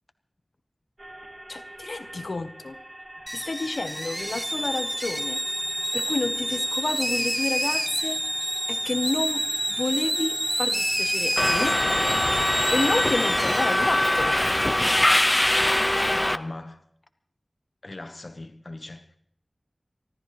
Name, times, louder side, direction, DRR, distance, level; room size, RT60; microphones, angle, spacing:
sound 1, 1.0-16.2, right 1 dB, 60° right, 3.4 m, -45 dB
voice 1, 1.5-2.8 3.3-5.4 5.9-8.2 8.7-11.8 12.7-14.4, left 3 dB, 75° left, 0.9 m, -30 dB
sound 2, 3.3-15.5, equal, 10° right, 0.8 m, -29 dB
Subway metro underground, 11.4-16.4, left 1 dB, 25° left, 0.5 m, -22 dB
voice 2, 16.1-16.8 17.8-19.2, left 2 dB, 55° left, 1.2 m, -39 dB
24.5 x 14.5 x 3.2 m
wide cardioid pair, 40°, 0 cm